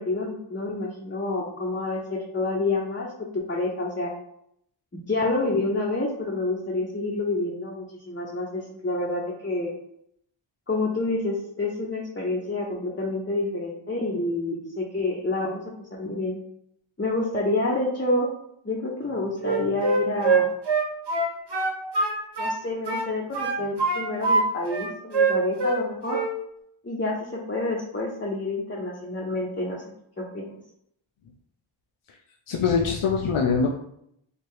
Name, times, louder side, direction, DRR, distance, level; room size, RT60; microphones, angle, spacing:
voice 1, 0.0-3.1 3.5-4.1 4.9-9.7 10.7-15.6 15.9-16.4 17.0-18.3 18.6-20.5 22.4-26.2 26.8-29.8 30.2-30.5, left 2 dB, 25° left, -4 dB, 0.8 m, -28 dB
Wind instrument woodwind instrument, 19.4-22.6 22.9-24.4 24.7-25.8 26.1-26.3, right 4 dB, 55° right, 1.0 m, -23 dB
voice 2, 32.5-33.7, left 5 dB, 85° left, 0 dB, 0.6 m, -23 dB
3.3 x 2.9 x 4.6 m, 0.73 s
wide cardioid pair, 65°, 48 cm